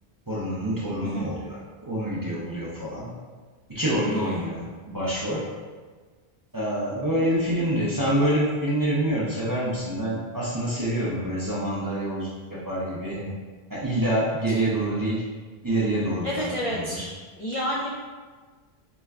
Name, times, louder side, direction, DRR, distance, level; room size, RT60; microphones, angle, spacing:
voice 1, 0.3-3.2 3.7-5.5 6.5-13.3 13.7-15.2 15.6-17.1, right 1 dB, 25° right, -8 dB, 0.5 m, -27 dB
voice 2, 4.0-4.6 7.1-7.7 14.5-14.6 16.2-17.0 17.4-17.9, equal, 55° left, -5 dB, 0.3 m, -31 dB
4.9 x 2.2 x 2.4 m, 1.4 s
omnidirectional pair, 1.1 m